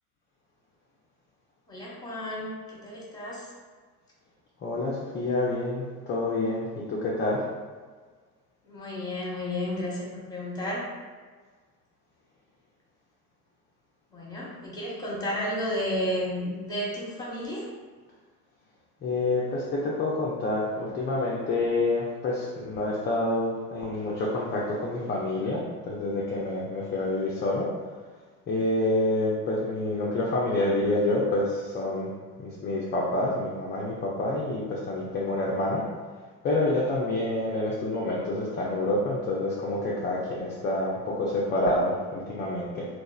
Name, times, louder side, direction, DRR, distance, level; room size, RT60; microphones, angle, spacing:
voice 1, 1.7-3.5 8.6-10.9 14.1-17.7, left 1 dB, 10° left, -5 dB, 0.9 m, -32 dB
voice 2, 4.6-7.4 19.0-27.7 28.5-32.1 32.4-35.8 36.4-42.9, left 2 dB, 25° left, -5 dB, 0.4 m, -28 dB
2.9 x 2.0 x 2.3 m, 1.5 s
hypercardioid pair, 60°, 48 cm